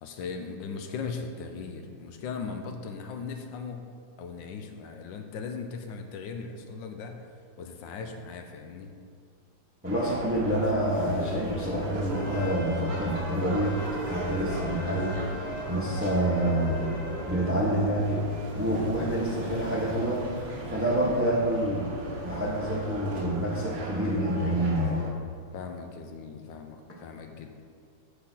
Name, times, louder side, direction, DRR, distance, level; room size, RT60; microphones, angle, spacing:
voice 1, 0.0-3.9 4.2-7.2 7.6-8.9 18.6-18.9 25.5-27.6, left 5 dB, 75° left, 5 dB, 1.3 m, -38 dB
voice 2, 9.8-13.8 14.1-15.3 15.7-16.9 17.2-18.2 18.5-20.4 20.7-25.0, right 1 dB, 15° right, -3 dB, 0.4 m, -27 dB
sound 1, 9.8-25.1, right 1 dB, 75° right, 1.8 m, -37 dB
Trumpet, 12.1-17.5, left 2 dB, 45° left, 1.1 m, -45 dB
8.6 x 4.0 x 6.1 m, 2.2 s
omnidirectional pair, 2.1 m